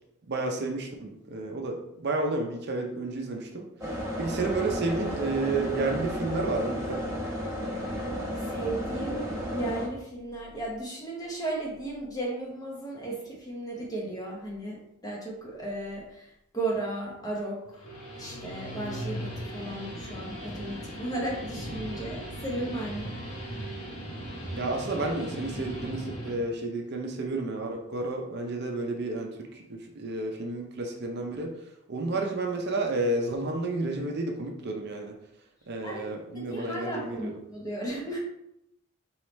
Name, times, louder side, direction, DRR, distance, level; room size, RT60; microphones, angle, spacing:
voice 1, 0.3-7.1 24.6-31.5 31.9-35.2 35.7-37.3, right 2 dB, 50° right, 2 dB, 0.5 m, -31 dB
sound 1, 3.8-9.9, equal, 15° right, 1.0 m, -33 dB
voice 2, 7.7-8.1 8.4-17.9 18.2-23.1 35.8-36.0 36.3-38.2, right 2 dB, 15° left, -3 dB, 0.9 m, -35 dB
Guitar, 17.7-26.4, equal, 75° left, 1.3 m, -38 dB
4.7 x 3.1 x 3.1 m, 0.81 s
head